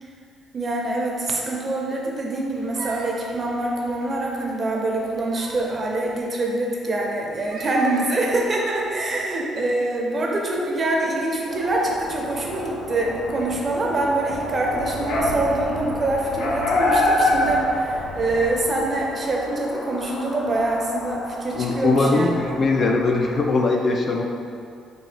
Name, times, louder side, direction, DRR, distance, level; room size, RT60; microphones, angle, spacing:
voice 1, 0.5-22.5, right 2 dB, 35° right, -1 dB, 0.6 m, -25 dB
sound 1, 2.4-4.5 5.0-6.2 7.3-9.1, right 3 dB, 80° right, 0.5 m, -40 dB
sound 2, 11.5-23.4, left 1 dB, 90° left, 0.6 m, -27 dB
voice 2, 21.5-24.2, left 3 dB, 40° left, 1 dB, 0.3 m, -20 dB
3.9 x 2.6 x 3.3 m, 2.4 s
cardioid pair, 115°, 0 cm